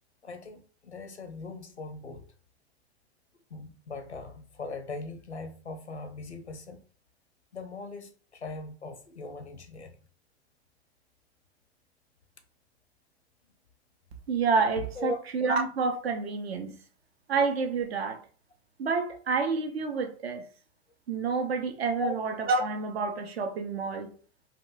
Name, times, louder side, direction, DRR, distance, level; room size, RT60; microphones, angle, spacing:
voice 1, 0.2-2.3 3.5-6.8 7.5-10.0 15.0-15.2 22.0-22.1, left 3 dB, 90° left, 0.6 m, -39 dB
voice 2, 14.3-16.8 17.3-18.2 18.8-20.4 21.1-24.1, right 4 dB, 70° right, 0.8 m, -28 dB
4.0 x 2.5 x 2.6 m
figure-of-eight pair, 90°, 32 cm